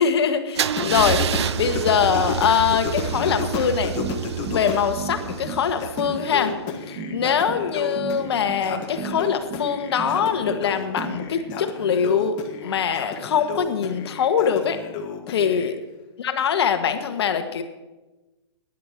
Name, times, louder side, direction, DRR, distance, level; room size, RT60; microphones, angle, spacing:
voice 1, 0.0-3.9 4.5-6.6 6.9-14.8 15.3-15.8 16.2-17.6, left 7 dB, 65° left, 8 dB, 1.5 m, -23 dB
Car / Engine starting / Idling, 0.6-6.4, right 9 dB, 70° right, 0.5 m, -28 dB
Singing, 0.8-4.9 5.3-15.7, left 5 dB, 30° left, 1.6 m, -32 dB
sound 1, 3.9-11.6, right 5 dB, 25° right, 2.0 m, -34 dB
16.0 x 10.5 x 4.5 m, 1.1 s
hypercardioid pair, 130°, 15 cm